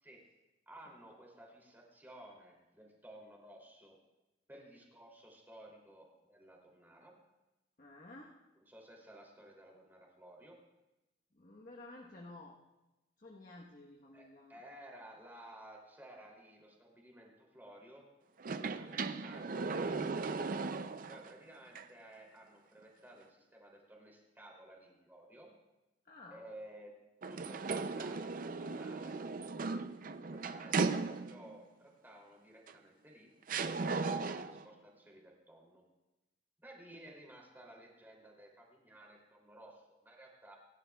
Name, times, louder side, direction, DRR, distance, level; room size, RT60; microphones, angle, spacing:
voice 1, 0.0-4.0 4.5-7.1 8.7-10.6 14.1-18.1 18.5-20.6 21.1-25.5 26.3-26.9 27.3-29.2 30.3-33.3 33.6-35.8 36.6-40.5, right 1 dB, 10° right, -1 dB, 2.9 m, -55 dB
voice 2, 7.8-8.3 11.3-12.6 13.2-14.6 26.0-26.4, left 2 dB, 45° left, -2 dB, 1.2 m, -53 dB
sound 1, 18.4-21.3 21.8-21.9 27.2-31.6 32.7-32.8 33.5-34.7, right 4 dB, 45° right, 0.5 m, -37 dB
26.5 x 11.5 x 2.4 m, 1.0 s
head